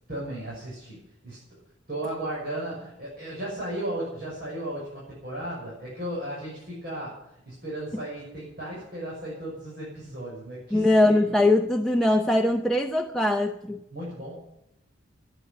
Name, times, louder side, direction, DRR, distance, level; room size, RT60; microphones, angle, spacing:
voice 1, 0.1-1.4 1.9-11.3 13.9-14.4, right 1 dB, 50° right, -7 dB, 6.6 m, -35 dB
voice 2, 10.7-13.8, left 1 dB, ahead, 2 dB, 0.6 m, -21 dB
13.5 x 10.0 x 9.2 m, 0.83 s
head